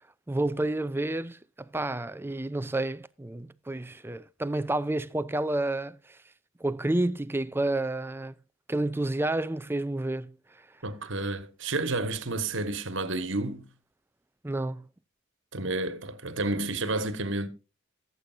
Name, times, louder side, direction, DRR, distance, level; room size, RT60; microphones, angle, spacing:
voice 1, 0.3-6.2 6.6-8.3 8.7-10.6 14.4-14.8 15.6-15.7, right 2 dB, 10° right, 0.4 m, -30 dB
voice 2, 10.8-13.7 15.5-17.5, right 2 dB, 60° right, 1.5 m, -30 dB
17.5 x 8.3 x 2.6 m
head